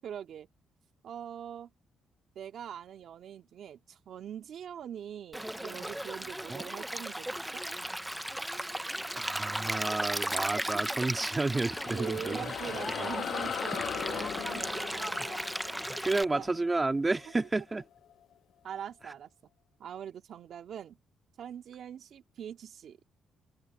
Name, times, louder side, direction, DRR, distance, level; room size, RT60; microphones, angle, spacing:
voice 1, 0.0-0.5 1.0-1.7 2.4-7.6 11.9-15.4 16.1-16.5 18.6-19.3 19.8-21.0 21.4-23.0, right 9 dB, 65° right, 2.2 m, -43 dB
Stream, 5.3-16.2, right 1 dB, 5° right, 0.6 m, -36 dB
voice 2, 9.2-12.4 14.9-15.3 16.0-17.8, right 3 dB, 20° right, 1.9 m, -31 dB
sound 1, 11.3-18.1, left 9 dB, 70° left, 1.6 m, -40 dB
open air
cardioid pair, 90°, 0 cm